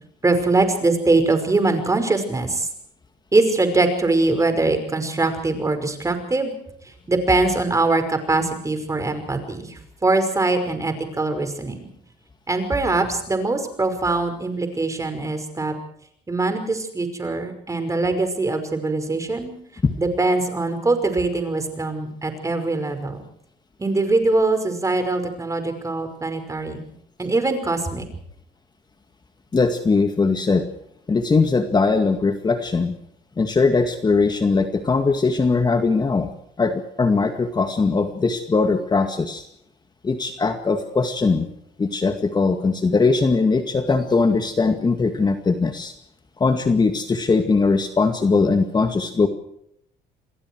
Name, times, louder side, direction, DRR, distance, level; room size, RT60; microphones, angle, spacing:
voice 1, 0.2-2.7 3.3-6.5 6.8-11.9 12.5-15.7 16.3-19.5 20.0-23.2 23.8-26.8 27.2-28.0, right 2 dB, 20° right, 8 dB, 5.5 m, -22 dB
voice 2, 29.5-30.7 31.1-32.9 33.4-36.3 36.6-39.4 40.0-41.5 41.8-45.9 46.4-49.3, left 4 dB, 25° left, 7 dB, 2.1 m, -20 dB
28.0 x 21.5 x 4.7 m, 0.70 s
cardioid pair, 110°, 17 cm